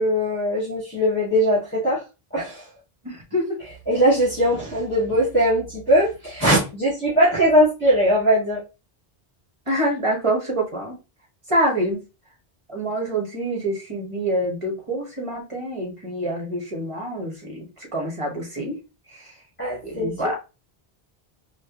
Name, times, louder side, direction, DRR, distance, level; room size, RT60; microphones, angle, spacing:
voice 1, 0.0-2.0 2.3-2.7 3.9-8.6 19.6-20.1, equal, 10° left, 1.4 m, -20 dB
voice 2, 3.0-3.6 9.7-10.9 11.5-12.0 12.7-18.8 19.1-19.3 19.8-20.4, right 1 dB, 30° right, 1.3 m, -26 dB
4.3 x 2.3 x 2.9 m
omnidirectional pair, 1.1 m